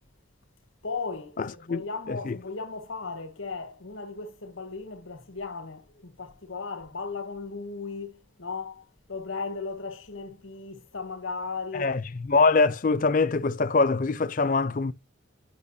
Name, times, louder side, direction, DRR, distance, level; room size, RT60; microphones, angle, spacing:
voice 1, 0.8-11.9, left 4 dB, 85° left, 1.6 m, -36 dB
voice 2, 1.4-2.4 11.7-12.0 12.3-14.9, left 4 dB, 40° left, 0.5 m, -23 dB
9.9 x 6.3 x 2.7 m
head